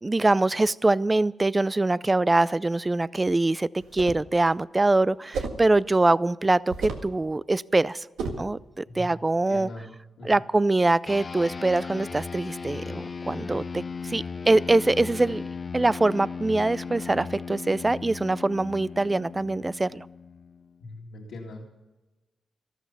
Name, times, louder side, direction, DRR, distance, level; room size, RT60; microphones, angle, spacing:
voice 1, 0.0-8.1 8.4-9.7 10.2-15.4 15.7-20.1, right 2 dB, 20° right, 20 dB, 0.4 m, -23 dB
sound 1, 3.8-4.3 5.3-5.7 6.7-7.1 8.2-8.5, right 4 dB, 90° right, 1.8 m, -32 dB
voice 2, 9.5-10.4 20.8-21.7, left 2 dB, 75° left, -3 dB, 2.3 m, -41 dB
sound 2, 11.1-20.8, left 5 dB, 40° left, 0.6 m, -37 dB
13.5 x 13.0 x 5.7 m, 1.1 s
cardioid pair, 75°, 0 cm